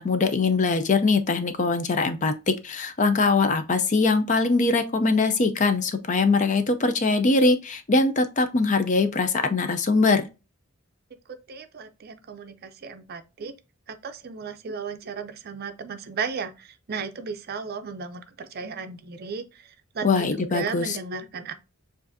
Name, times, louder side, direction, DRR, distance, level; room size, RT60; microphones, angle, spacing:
voice 1, 0.0-10.2 20.0-21.0, left 3 dB, 35° left, 0.5 m, -22 dB
voice 2, 11.5-13.6 13.9-21.5, right 5 dB, 45° right, 0.5 m, -35 dB
7.0 x 2.5 x 2.6 m
head